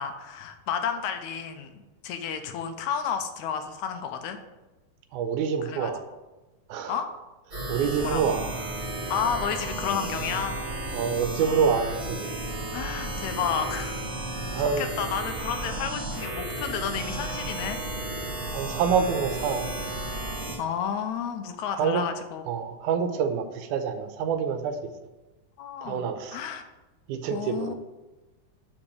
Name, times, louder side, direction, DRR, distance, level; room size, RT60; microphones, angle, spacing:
voice 1, 0.0-4.4 5.6-5.9 6.9-7.1 8.0-8.3 9.1-10.6 12.7-14.1 14.8-17.8 20.6-22.4 25.6-26.6 27.3-27.7, left 7 dB, 80° left, 7 dB, 2.0 m, -31 dB
voice 2, 5.1-6.0 6.7-7.0 7.7-8.5 10.9-12.4 14.5-14.9 18.5-19.7 21.7-22.0 22.5-24.8 25.8-26.4 27.1-27.7, right 6 dB, 85° right, 8 dB, 2.2 m, -27 dB
sound 1, 7.5-20.6, right 1 dB, 30° right, 1.5 m, -33 dB
5.9 x 5.4 x 6.6 m, 1.1 s
omnidirectional pair, 3.5 m